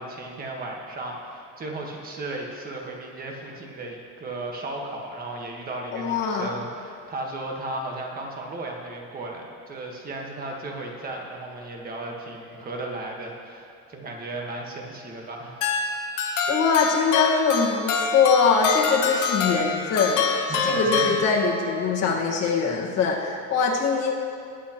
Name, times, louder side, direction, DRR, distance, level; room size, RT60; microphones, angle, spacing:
voice 1, 0.0-15.6 20.5-21.2, right 2 dB, 30° right, 0 dB, 1.4 m, -35 dB
voice 2, 5.9-6.5 16.5-20.2 20.6-24.1, left 5 dB, 55° left, -1 dB, 1.7 m, -22 dB
sound 1, 15.6-21.8, left 5 dB, 70° left, 1.2 m, -26 dB
20.5 x 8.4 x 3.0 m, 2.4 s
cardioid pair, 170°, 31 cm